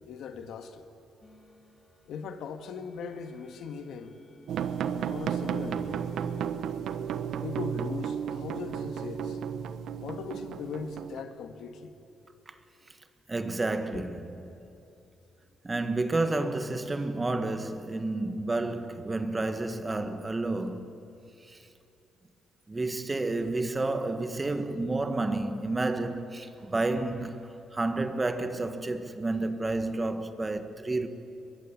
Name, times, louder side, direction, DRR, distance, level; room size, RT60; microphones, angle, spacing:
voice 1, 0.1-0.9 2.1-4.2 5.1-6.0 7.4-9.4 10.0-12.0 13.9-14.0, left 5 dB, 75° left, 1.9 m, -39 dB
sound 1, 1.2-6.4, left 2 dB, 25° left, 3.0 m, -55 dB
sound 2, 4.5-11.2, right 8 dB, 75° right, 1.2 m, -33 dB
voice 2, 13.3-14.3 15.6-21.0 21.4-21.6 22.7-31.1, right 2 dB, 20° right, 1.7 m, -30 dB
22.5 x 22.0 x 8.8 m
cardioid pair, 90°, 0 cm